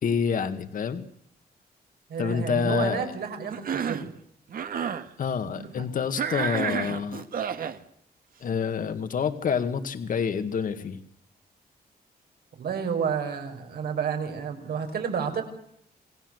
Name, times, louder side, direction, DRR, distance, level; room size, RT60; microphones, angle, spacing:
voice 1, 0.0-1.1 2.2-3.1 5.2-7.2 8.4-11.0, left 6 dB, 60° left, 8 dB, 2.1 m, -27 dB
voice 2, 2.1-4.1 5.6-6.1 12.6-15.4, right 6 dB, 80° right, 5 dB, 6.0 m, -31 dB
Cough, 3.5-4.1 4.5-5.1 6.2-7.8, right 7 dB, 65° right, 1.9 m, -30 dB
28.0 x 19.0 x 8.1 m, 0.69 s
wide cardioid pair, 160°, 16 cm